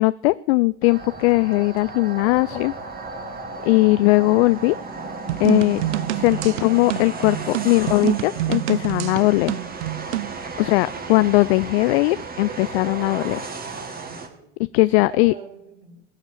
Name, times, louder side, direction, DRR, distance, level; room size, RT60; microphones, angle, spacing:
voice 1, 0.0-2.7 3.6-4.8 5.4-5.8 6.2-9.6 10.6-13.5 14.7-15.3, left 22 dB, 60° left, 17 dB, 0.5 m, -19 dB
sound 1, 0.8-14.3, right 3 dB, 25° right, 2.2 m, -34 dB
sound 2, 5.3-10.4, right 16 dB, 75° right, 0.6 m, -26 dB
voice 2, 10.8-11.2 14.0-14.5 14.9-16.0, right 5 dB, 55° right, -7 dB, 4.8 m, -43 dB
20.5 x 7.2 x 7.1 m, 0.76 s
hypercardioid pair, 75°, 36 cm